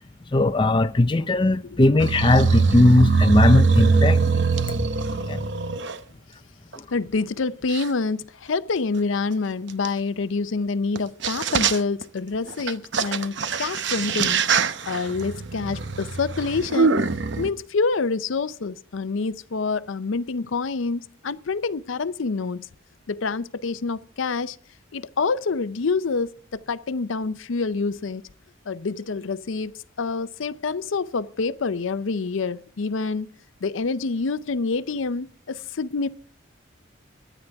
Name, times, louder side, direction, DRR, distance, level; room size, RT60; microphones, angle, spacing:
voice 1, 0.3-4.2 5.3-5.4, left 2 dB, 25° left, 0.5 m, -18 dB
sound 1, 2.0-6.0 6.7-6.8 7.7-7.9 9.9-10.0 11.0-11.1 11.2-12.0 12.5-17.5, right 4 dB, 60° right, 0.8 m, -22 dB
voice 2, 6.9-14.4 14.9-17.0 17.4-22.7 23.1-24.6 24.9-28.2 28.7-33.3 33.6-36.1, left 4 dB, 70° left, 0.6 m, -27 dB
23.0 x 10.0 x 3.5 m
head